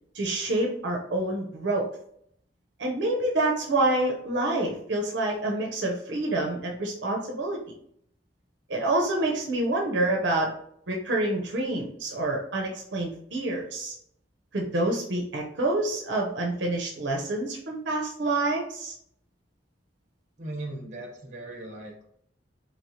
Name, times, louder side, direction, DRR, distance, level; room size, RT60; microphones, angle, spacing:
voice 1, 0.1-1.9 2.8-7.6 8.7-10.5 10.9-13.9 14.5-18.9, right 2 dB, 75° right, 0 dB, 0.7 m, -27 dB
voice 2, 20.4-22.0, right 2 dB, 40° right, 1 dB, 1.0 m, -38 dB
4.1 x 3.2 x 2.7 m, 0.69 s
head